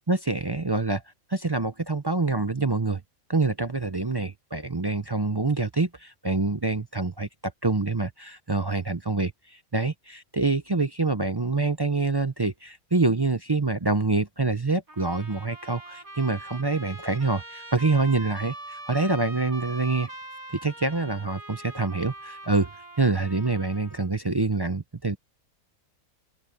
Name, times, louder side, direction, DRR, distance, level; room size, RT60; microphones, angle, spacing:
voice 1, 0.1-1.0 1.3-3.0 3.3-20.1 20.6-22.7 23.0-25.2, right 3 dB, 35° right, 0.4 m, -26 dB
Trumpet, 14.9-24.1, right 2 dB, 70° right, 7.0 m, -42 dB
open air
omnidirectional pair, 1.5 m